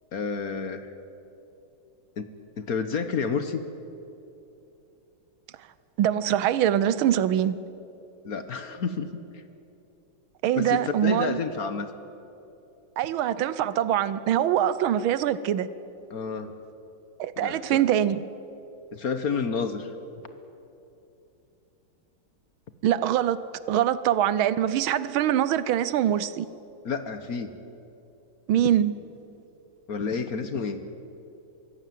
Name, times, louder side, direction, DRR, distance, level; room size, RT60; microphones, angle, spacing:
voice 1, 0.1-0.9 2.2-2.3 2.6-3.6 8.2-9.4 10.6-11.9 16.1-16.5 17.4-17.8 18.9-20.0 26.8-27.6 29.9-30.8, left 5 dB, 55° left, 10 dB, 1.3 m, -30 dB
voice 2, 6.0-7.6 10.4-11.4 13.0-15.7 17.2-18.3 22.8-23.4 23.7-26.5 28.5-28.9, right 11 dB, 80° right, 16 dB, 1.6 m, -23 dB
23.5 x 15.5 x 9.2 m, 2.8 s
omnidirectional pair, 2.3 m